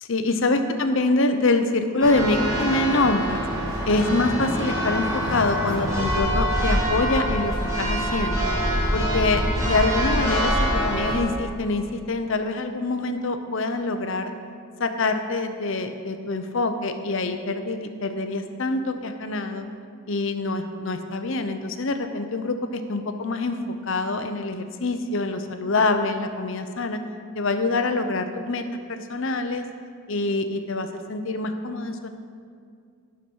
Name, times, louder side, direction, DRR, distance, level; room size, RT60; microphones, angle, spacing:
voice 1, 0.0-3.4 3.9-8.5 8.9-14.3 14.8-19.7 20.1-23.6 23.8-27.0 27.3-28.6 28.9-29.7 30.1-32.1, left 2 dB, 60° left, 7 dB, 0.6 m, -25 dB
Church bell, 2.0-11.2, equal, 15° right, 2.0 m, -25 dB
11.5 x 5.8 x 5.4 m, 2.2 s
head